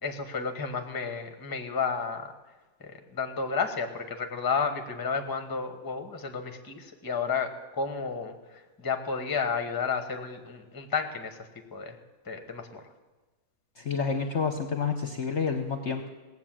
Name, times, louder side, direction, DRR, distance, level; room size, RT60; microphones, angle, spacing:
voice 1, 0.0-2.3 2.8-11.4 11.7-12.0 12.2-12.8, left 5 dB, 15° left, 6 dB, 0.8 m, -32 dB
voice 2, 13.8-16.1, left 5 dB, 50° left, 6 dB, 0.9 m, -29 dB
17.5 x 7.9 x 7.5 m, 1.2 s
omnidirectional pair, 1.8 m